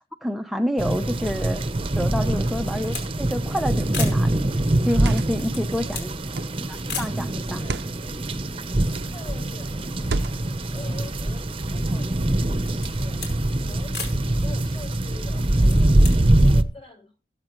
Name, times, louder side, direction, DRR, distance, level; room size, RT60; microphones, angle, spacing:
voice 1, 0.2-1.6 2.0-4.5 4.8-6.1 6.7-7.6, equal, ahead, 5 dB, 0.7 m, -28 dB
sound 1, 0.8-16.6, right 1 dB, 30° right, 0.9 m, -23 dB
sound 2, 2.3-3.1 3.4-3.5 3.9-4.3 5.1-6.2 6.9-7.2 7.9-8.0 8.2-9.2 9.5-10.8 11.3-12.0 12.5-13.4 13.9-14.2 15.4-16.2, left 5 dB, 70° left, 4.8 m, -36 dB
sound 3, 3.6-4.0 4.8-5.5 6.3-6.7 7.5-8.0 8.8-9.2 10.0-10.6, right 3 dB, 70° right, 0.6 m, -32 dB
voice 2, 5.6-6.4 7.4-7.8 8.4-14.0 14.3-17.2, left 3 dB, 30° left, 4 dB, 5.2 m, -46 dB
20.5 x 8.2 x 3.1 m, 0.30 s
head